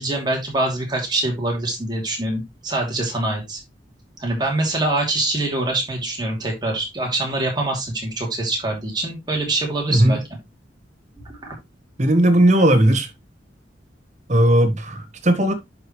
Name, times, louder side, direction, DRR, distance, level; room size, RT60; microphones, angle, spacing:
voice 1, 0.0-3.6 4.2-10.2 11.2-11.5, right 2 dB, 25° right, 2.8 m, -24 dB
voice 2, 12.0-13.1 14.3-15.5, right 1 dB, 40° right, 1.3 m, -16 dB
10.5 x 4.8 x 3.1 m
head